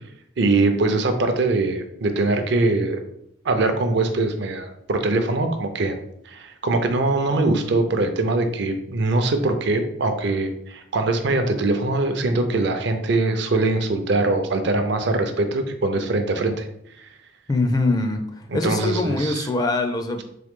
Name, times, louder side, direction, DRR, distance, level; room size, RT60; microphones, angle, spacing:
voice 1, 0.4-3.0 3.4-6.0 6.3-16.7 17.0-17.1 18.5-19.5, right 2 dB, 65° right, 7 dB, 0.5 m, -22 dB
voice 2, 17.5-18.2 18.5-20.2, left 2 dB, 20° left, 5 dB, 0.4 m, -23 dB
3.8 x 3.1 x 3.6 m, 0.73 s
head